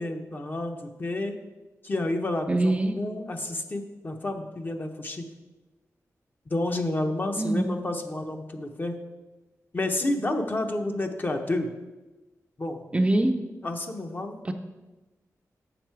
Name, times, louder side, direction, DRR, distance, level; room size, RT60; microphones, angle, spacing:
voice 1, 0.0-1.3 1.8-5.2 6.5-8.9 9.7-11.7 12.6-12.8 13.6-14.4, left 2 dB, 35° left, 5 dB, 0.8 m, -30 dB
voice 2, 2.5-3.0 7.4-7.6 12.9-13.4 14.4-14.5, right 1 dB, 20° right, 6 dB, 0.5 m, -23 dB
7.2 x 6.0 x 4.6 m, 1.1 s
wide cardioid pair, 90°, 6 cm